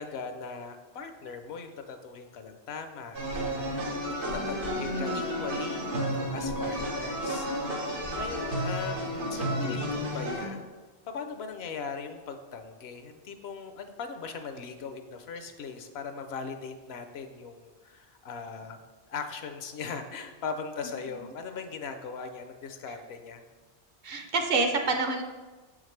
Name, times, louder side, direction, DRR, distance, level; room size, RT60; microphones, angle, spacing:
voice 1, 0.0-3.9 4.3-7.8 8.1-9.0 9.3-10.7 11.1-18.8 19.1-23.4, left 5 dB, 70° left, 7 dB, 0.8 m, -39 dB
sound 1, 3.1-10.5, equal, 90° right, 1.6 m, -32 dB
voice 2, 4.9-5.3 24.0-25.2, right 3 dB, 60° right, 4 dB, 0.8 m, -28 dB
7.0 x 5.0 x 3.2 m, 1.3 s
omnidirectional pair, 1.2 m